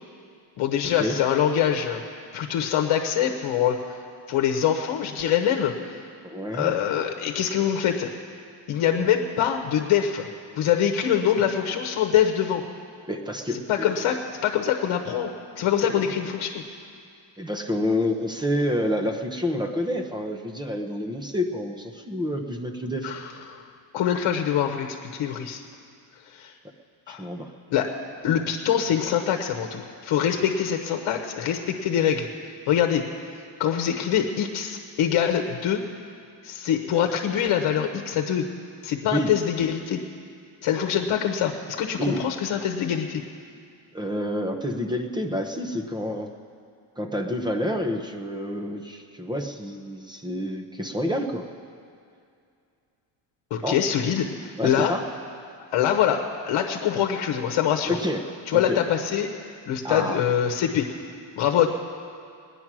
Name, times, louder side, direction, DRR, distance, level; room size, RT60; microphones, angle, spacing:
voice 1, 0.6-2.0 2.3-3.8 4.3-6.0 6.5-8.1 8.7-10.3 10.6-12.6 13.7-16.6 23.0-23.6 23.9-25.6 26.3-26.5 27.1-27.3 27.7-27.9 28.2-32.3 32.7-33.0 33.6-35.8 36.4-38.5 38.8-40.0 40.6-43.2 53.5-55.0 55.7-58.0 58.5-59.3 59.7-60.9 61.4-61.7, left 9 dB, 65° left, 3 dB, 1.1 m, -24 dB
voice 2, 6.2-6.7 13.1-14.2 15.8-16.3 17.4-23.1 27.1-27.5 39.1-39.3 42.0-42.2 43.9-46.3 47.0-51.5 53.6-53.8 54.6-55.0 57.9-58.3 58.5-58.8 59.8-60.2, left 1 dB, 10° right, 5 dB, 0.7 m, -28 dB
19.5 x 9.9 x 6.1 m, 2.4 s
cardioid pair, 165°, 49 cm